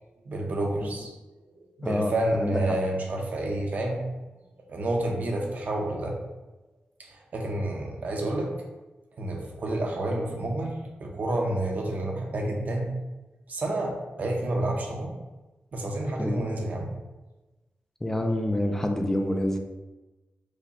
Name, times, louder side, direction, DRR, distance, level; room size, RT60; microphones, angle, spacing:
voice 1, 0.2-1.1 1.8-4.0 4.7-6.1 7.3-8.5 9.2-10.7 11.0-12.9 13.5-13.9 14.2-15.1 15.7-16.9, right 1 dB, 55° right, 1 dB, 0.8 m, -29 dB
voice 2, 1.8-2.1 2.4-2.6 16.2-16.3 18.0-19.6, left 1 dB, 15° left, 4 dB, 0.4 m, -26 dB
5.0 x 2.3 x 4.0 m, 1.1 s
wide cardioid pair, 130°, 3 cm